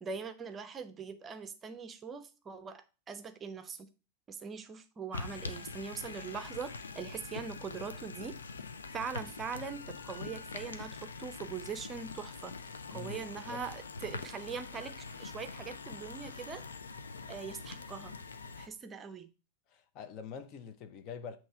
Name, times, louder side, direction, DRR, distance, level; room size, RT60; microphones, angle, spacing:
voice 1, 0.0-3.9 4.3-8.4 8.9-12.5 12.9-16.6 17.3-18.1 18.6-19.3, right 6 dB, 20° right, 0.6 m, -42 dB
sound 1, 5.1-18.7, left 4 dB, 70° left, 0.6 m, -44 dB
voice 2, 12.9-13.6 19.7-21.4, left 6 dB, 40° left, 0.8 m, -45 dB
7.9 x 3.1 x 4.7 m
figure-of-eight pair, 90°, 0 cm